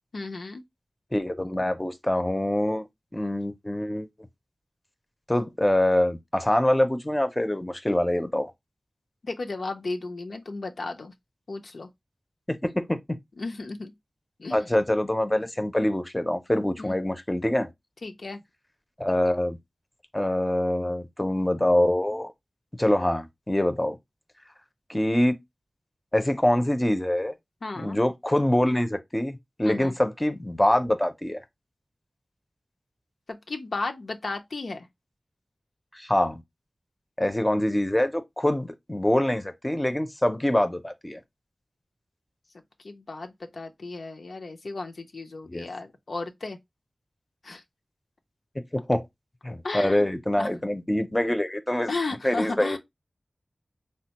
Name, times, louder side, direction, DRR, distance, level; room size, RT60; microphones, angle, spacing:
voice 1, 0.1-0.6 9.2-11.1 11.5-11.9 13.4-13.9 14.4-14.7 16.8-17.0 18.0-18.4 27.6-28.0 29.6-30.0 33.3-34.9 42.8-46.6 47.4-47.6 49.6-50.5 51.9-52.8, left 3 dB, 85° left, 0.4 m, -34 dB
voice 2, 1.1-2.8 3.1-4.1 5.3-8.5 12.5-12.6 12.9-13.0 14.5-17.7 19.0-19.6 20.1-22.3 22.8-24.0 24.9-25.3 26.1-27.3 27.8-31.4 35.9-36.4 37.2-41.2 45.5-45.7 48.7-49.0 49.4-51.9 52.2-52.8, left 1 dB, 20° left, 0.4 m, -25 dB
3.6 x 2.1 x 2.7 m
wide cardioid pair, 60°, 0 cm